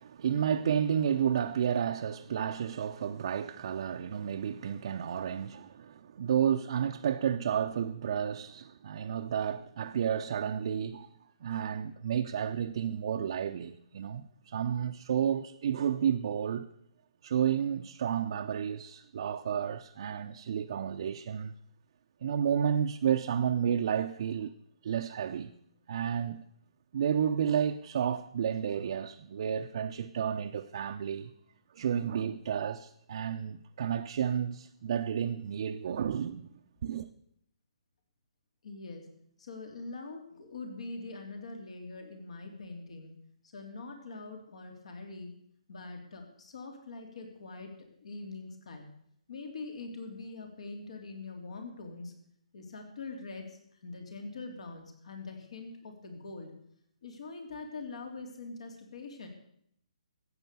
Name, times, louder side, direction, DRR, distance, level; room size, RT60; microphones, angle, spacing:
voice 1, 0.0-11.1 11.4-16.7 17.2-21.5 22.2-24.5 24.8-25.5 25.9-26.4 26.9-31.3 31.7-36.5 36.8-37.1, right 8 dB, 55° right, 0.7 m, -31 dB
voice 2, 38.6-39.0 39.4-43.1 43.5-45.3 45.7-47.7 48.0-48.9 49.3-52.1 52.5-56.5 57.0-59.3, left 3 dB, 65° left, 3.4 m, -43 dB
14.5 x 9.0 x 6.9 m
hypercardioid pair, 145°, 4 cm